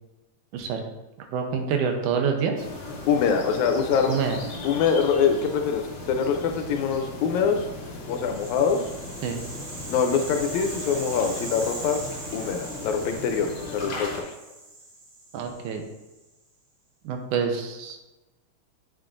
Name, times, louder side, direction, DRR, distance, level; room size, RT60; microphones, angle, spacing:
voice 1, 1.3-2.6 4.1-4.4 9.2-9.4 15.3-15.8 17.1-18.0, right 6 dB, 90° right, 4 dB, 2.2 m, -26 dB
sound 1, 2.6-14.2, left 2 dB, 60° left, 1.3 m, -37 dB
voice 2, 3.1-4.1 4.6-7.7 8.1-8.8 9.9-12.0 12.3-14.3, left 6 dB, 80° left, 5 dB, 1.8 m, -24 dB
Rattle (instrument), 8.0-16.2, right 2 dB, 70° right, 3.5 m, -40 dB
6.9 x 6.1 x 2.5 m, 1.0 s
omnidirectional pair, 3.5 m